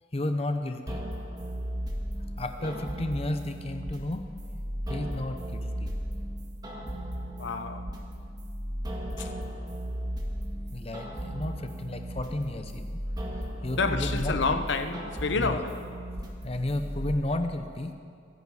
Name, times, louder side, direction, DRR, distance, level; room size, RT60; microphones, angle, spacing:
voice 1, 0.1-1.0 2.4-4.2 4.9-5.9 10.7-13.0 13.6-14.4 15.3-15.6 16.4-17.9, left 1 dB, 30° left, 0.7 m, -32 dB
sound 1, 0.9-17.2, equal, 20° right, 1.8 m, -36 dB
voice 2, 7.4-7.9 9.2-9.3 13.8-15.8, left 4 dB, 75° left, 0.9 m, -30 dB
24.5 x 10.5 x 4.8 m
head